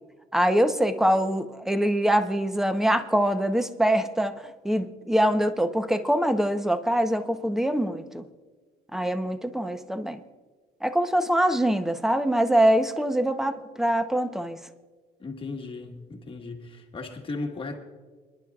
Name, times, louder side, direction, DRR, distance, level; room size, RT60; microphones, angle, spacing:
voice 1, 0.3-8.2 8.9-10.2 10.8-14.6, right 1 dB, ahead, 9 dB, 0.8 m, -24 dB
voice 2, 15.2-17.8, left 3 dB, 30° left, 3 dB, 1.5 m, -36 dB
27.5 x 11.0 x 2.4 m, 1.4 s
cardioid pair, 110°, 17 cm